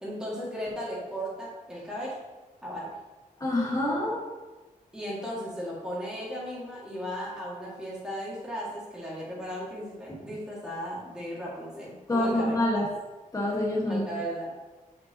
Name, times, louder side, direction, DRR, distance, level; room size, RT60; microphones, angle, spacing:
voice 1, 0.0-2.2 2.6-2.9 4.9-12.8 13.9-14.5, equal, 5° right, -7 dB, 2.1 m, -36 dB
voice 2, 3.4-4.2 12.1-12.9 13.3-14.0, left 1 dB, 25° left, -3 dB, 1.5 m, -26 dB
7.7 x 6.0 x 2.9 m, 1.2 s
wide cardioid pair, 170°, 14 cm